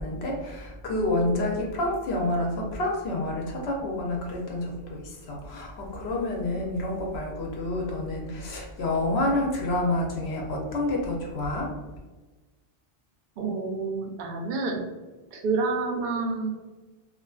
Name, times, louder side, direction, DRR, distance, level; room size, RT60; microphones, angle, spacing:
voice 1, 0.0-11.7, left 1 dB, 70° left, -1 dB, 0.8 m, -28 dB
voice 2, 13.4-14.9 15.3-16.5, right 4 dB, 60° right, 1 dB, 0.6 m, -28 dB
2.5 x 2.4 x 2.3 m, 1.2 s
omnidirectional pair, 1.2 m